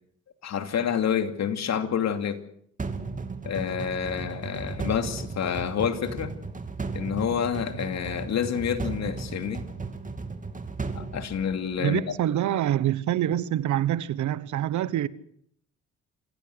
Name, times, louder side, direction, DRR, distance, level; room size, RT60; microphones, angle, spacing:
voice 1, 0.4-2.4 3.4-6.3 6.9-9.6 11.0-12.0, left 8 dB, 60° left, 2.8 m, -28 dB
sound 1, 2.8-12.0, right 4 dB, 25° right, 2.8 m, -35 dB
voice 2, 11.8-15.1, right 12 dB, 75° right, 1.2 m, -26 dB
27.0 x 16.0 x 8.0 m
cardioid pair, 90°, 30 cm